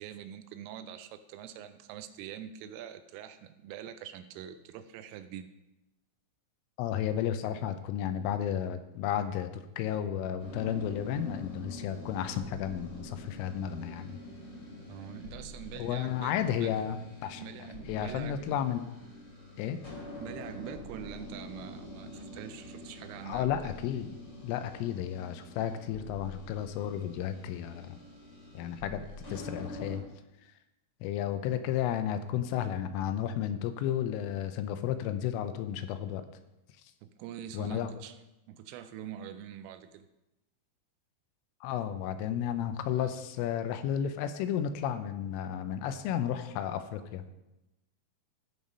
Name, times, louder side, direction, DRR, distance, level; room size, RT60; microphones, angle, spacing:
voice 1, 0.0-5.5 14.9-16.8 17.4-18.6 20.2-23.8 37.0-38.2 38.5-40.1, right 10 dB, 85° right, 10 dB, 3.1 m, -44 dB
voice 2, 6.8-14.2 15.8-17.0 17.2-17.4 17.9-18.9 19.6-19.8 23.2-24.1 24.4-28.0 28.5-29.0 29.3-30.0 31.0-36.2 37.5-37.9 41.6-47.3, left 10 dB, 85° left, 9 dB, 3.2 m, -33 dB
sound 1, 10.4-30.0, left 1 dB, 30° left, 2.4 m, -46 dB
15.0 x 5.6 x 5.3 m, 0.94 s
omnidirectional pair, 5.9 m